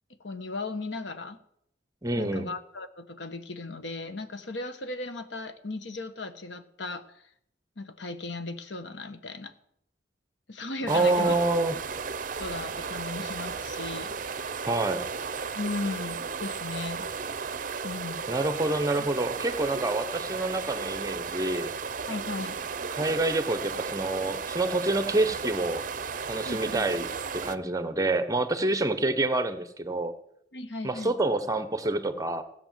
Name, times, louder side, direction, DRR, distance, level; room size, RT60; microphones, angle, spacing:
voice 1, 0.2-1.4 2.1-7.3 7.8-9.5 10.5-11.3 12.4-14.5 15.5-17.0 17.8-18.2 22.1-22.6 26.4-26.6 30.5-31.1, left 3 dB, 80° left, 10 dB, 1.3 m, -36 dB
voice 2, 2.0-2.5 10.9-11.7 14.6-15.1 18.3-21.7 22.9-25.8 26.3-27.1 27.3-30.1 30.8-32.4, right 2 dB, 20° right, 11 dB, 1.0 m, -27 dB
sound 1, 10.9-27.6, right 5 dB, 45° right, 0.6 m, -34 dB
16.0 x 8.1 x 7.6 m, 0.73 s
head